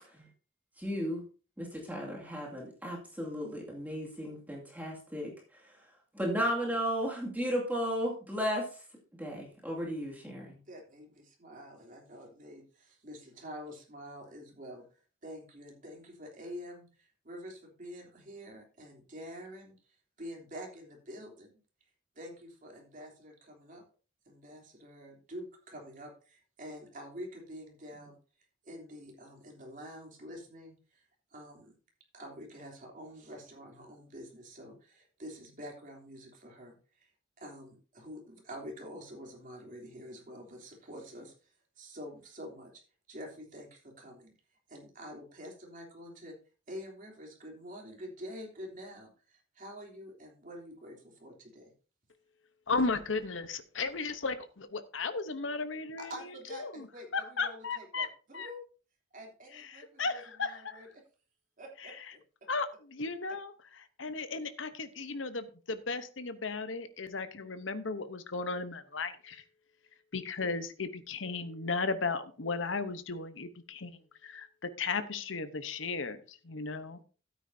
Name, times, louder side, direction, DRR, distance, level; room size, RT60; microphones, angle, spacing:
voice 1, 0.8-1.2 1.6-5.3 6.1-8.7 9.2-10.6, equal, 10° right, -3 dB, 2.3 m, -34 dB
voice 2, 10.7-19.8 20.2-21.6 22.1-23.8 24.3-28.2 28.6-31.7 32.1-37.1 37.4-42.8 43.1-44.3 44.7-46.3 46.7-51.7 56.0-58.6 59.1-60.9 61.6-62.2, equal, 45° right, 1 dB, 3.2 m, -47 dB
voice 3, 52.7-56.1 56.6-56.9 57.1-58.1 58.3-58.5 59.7-60.8 62.5-63.5 64.0-69.4 70.1-77.0, left 4 dB, 75° left, 11 dB, 1.0 m, -35 dB
13.0 x 9.2 x 2.8 m, 0.36 s
head